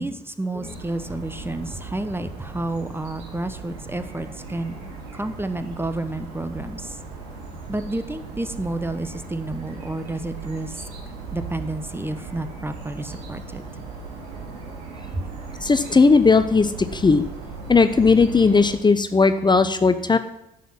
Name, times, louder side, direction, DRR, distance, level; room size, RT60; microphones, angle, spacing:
voice 1, 0.0-4.8 5.1-7.0 7.7-10.8 11.3-13.6 15.1-15.2, right 2 dB, 10° right, 11 dB, 1.0 m, -30 dB
sound 1, 0.6-18.7, right 4 dB, 75° right, 2.3 m, -38 dB
voice 2, 15.6-17.2 17.7-20.2, left 4 dB, 25° left, 11 dB, 0.8 m, -17 dB
11.0 x 7.6 x 6.0 m, 0.86 s
hypercardioid pair, 45°, 19 cm